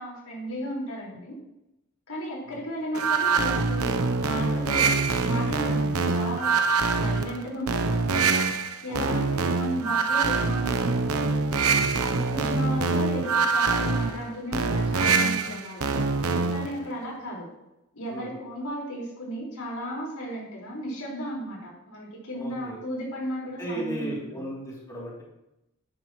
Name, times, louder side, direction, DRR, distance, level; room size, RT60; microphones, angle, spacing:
voice 1, 0.0-1.4 2.1-5.0 5.2-6.6 7.0-8.3 8.8-11.1 12.0-15.9 16.5-17.5 17.9-24.4, equal, 85° left, -4 dB, 5.0 m, -35 dB
sound 1, 2.9-16.7, right 4 dB, 85° right, 0.9 m, -24 dB
voice 2, 8.9-9.5 11.7-11.9 15.9-16.1 16.4-16.8 18.1-18.3 22.3-22.8 23.6-25.2, right 1 dB, 15° left, -6 dB, 3.2 m, -37 dB
13.5 x 11.5 x 3.2 m, 0.89 s
head